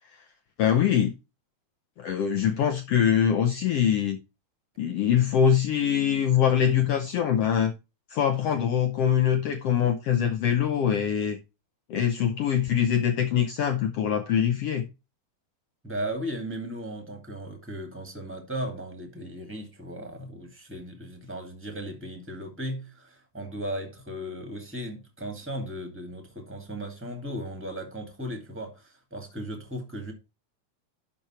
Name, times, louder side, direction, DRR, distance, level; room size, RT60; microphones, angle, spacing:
voice 1, 0.6-1.1 2.0-4.2 4.8-7.7 8.1-11.4 11.9-14.9, left 9 dB, 70° left, 1.6 m, -23 dB
voice 2, 15.8-30.1, equal, 5° right, 1.8 m, -36 dB
11.5 x 4.6 x 4.3 m
omnidirectional pair, 3.4 m